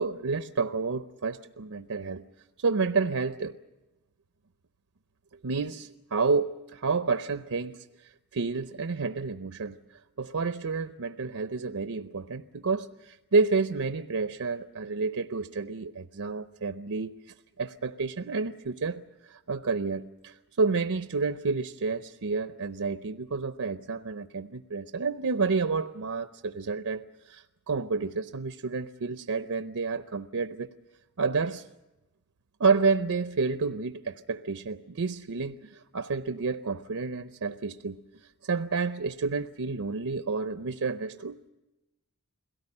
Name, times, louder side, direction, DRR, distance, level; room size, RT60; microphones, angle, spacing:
voice 1, 0.0-2.2 2.6-3.6 5.4-9.8 10.2-30.7 31.2-31.7 32.6-38.0 38.4-41.5, right 4 dB, 70° right, 10 dB, 0.7 m, -30 dB
22.5 x 17.5 x 9.8 m, 1.0 s
head